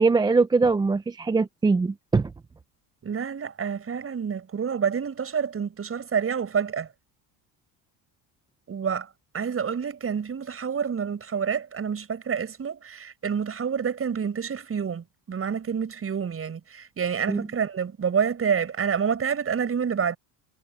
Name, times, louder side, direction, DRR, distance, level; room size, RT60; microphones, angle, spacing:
voice 1, 0.0-2.3 17.3-17.5, right 4 dB, 10° right, 0.4 m, -22 dB
voice 2, 3.0-6.9 8.7-9.1 9.3-20.2, right 7 dB, 35° right, 7.1 m, -28 dB
cardioid pair, 115°, 41 cm